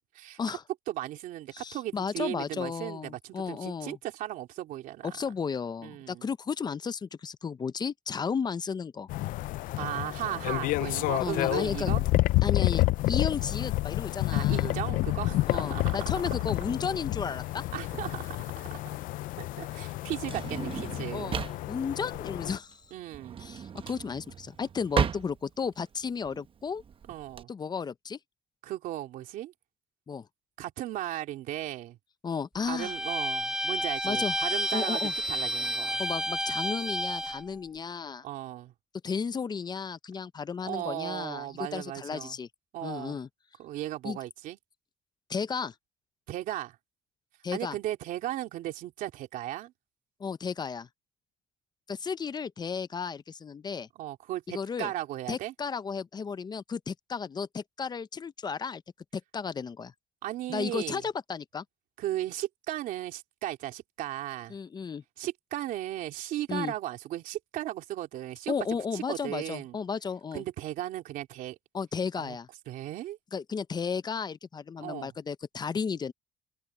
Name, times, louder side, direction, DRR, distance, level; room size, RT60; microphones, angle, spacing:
voice 1, 0.9-5.2 5.8-6.3 9.8-12.0 14.3-16.3 17.7-18.8 19.4-21.4 22.9-23.4 27.1-27.5 28.6-29.5 30.6-32.0 32.7-36.0 38.2-38.7 40.6-42.4 42.7-43.2 43.6-44.6 46.3-46.8 47.5-49.7 54.0-55.5 60.2-61.0 62.0-64.6 65.2-68.5 68.9-69.8 70.3-71.6 72.2-72.4 72.7-73.2 74.8-75.1, right 14 dB, 85° right, 3.1 m, -36 dB
voice 2, 1.5-4.0 5.0-9.1 11.2-11.9 12.4-14.8 15.5-17.6 21.1-22.8 23.4-26.8 27.5-28.2 30.1-30.3 32.2-32.9 34.0-34.3 34.7-35.1 36.0-38.2 39.0-42.5 42.8-43.3 44.0-44.2 45.3-45.7 47.4-47.8 50.2-50.9 51.9-53.9 54.5-54.9 55.3-58.8 59.1-59.9 60.5-61.6 64.5-65.0 66.5-66.7 68.5-70.4 71.7-72.5 73.3-76.1, left 6 dB, 30° left, 0.6 m, -34 dB
sound 1, 9.1-22.6, left 18 dB, 80° left, 0.4 m, -29 dB
Drawer open or close, 17.8-27.4, right 7 dB, 40° right, 0.9 m, -35 dB
Bowed string instrument, 32.8-37.4, equal, 5° right, 1.8 m, -30 dB
cardioid pair, 110°, 14 cm